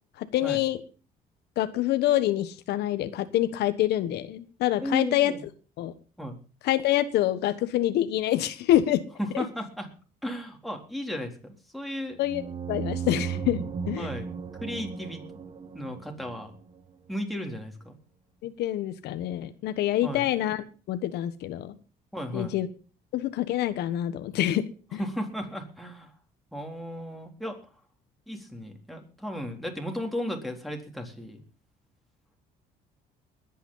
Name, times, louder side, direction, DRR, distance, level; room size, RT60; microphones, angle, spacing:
voice 1, 0.2-0.8 1.6-5.3 5.8-5.9 6.6-9.0 9.3-9.4 12.2-12.4 12.7-14.1 18.4-21.8 22.3-22.7 23.1-24.6 24.9-25.0, left 13 dB, 80° left, 11 dB, 1.3 m, -26 dB
voice 2, 4.8-5.4 6.2-6.4 9.2-9.9 10.2-12.2 14.0-14.3 14.6-15.2 15.7-16.5 17.1-18.0 20.0-20.3 22.1-22.6 25.0-26.1 26.5-27.6 28.3-31.4, equal, ahead, 2 dB, 3.9 m, -35 dB
sound 1, 12.2-16.8, right 7 dB, 30° right, 1.3 m, -35 dB
20.5 x 9.4 x 5.6 m, 0.37 s
cardioid pair, 110°, 17 cm